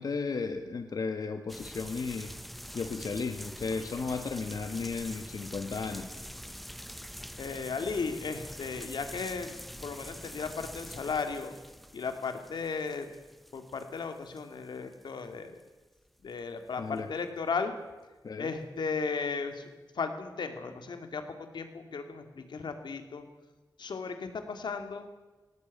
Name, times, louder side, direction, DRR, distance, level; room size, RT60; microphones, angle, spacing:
voice 1, 0.0-2.3 2.7-6.1 16.8-17.1 18.2-18.5, left 4 dB, 60° left, 7 dB, 1.2 m, -34 dB
sound 1, 1.5-15.3 15.6-15.7 16.3-16.7 17.0-17.1, equal, ahead, 0.6 m, -45 dB
voice 2, 7.4-9.5 9.8-11.5 11.9-13.1 13.5-15.6 16.2-17.7 18.4-19.7 19.9-23.2 23.8-25.1, left 5 dB, 85° left, 7 dB, 2.3 m, -35 dB
19.0 x 18.0 x 8.4 m, 1.2 s
wide cardioid pair, 150°, 8 cm